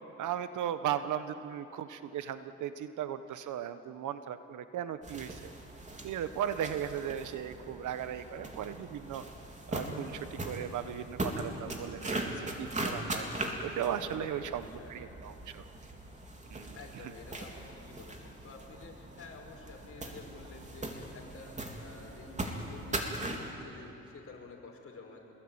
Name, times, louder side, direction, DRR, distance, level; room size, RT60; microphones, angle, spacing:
voice 1, 0.2-5.4 6.0-9.2 9.7-13.3 13.6-15.6 16.5-16.7, right 10 dB, 80° right, 11 dB, 1.2 m, -37 dB
sound 1, 5.0-23.5, right 1 dB, 25° right, 3.5 m, -40 dB
voice 2, 14.0-15.1 16.7-25.3, left 4 dB, 50° left, 1 dB, 5.4 m, -50 dB
25.5 x 21.5 x 8.9 m, 3.0 s
cardioid pair, 90°, 30 cm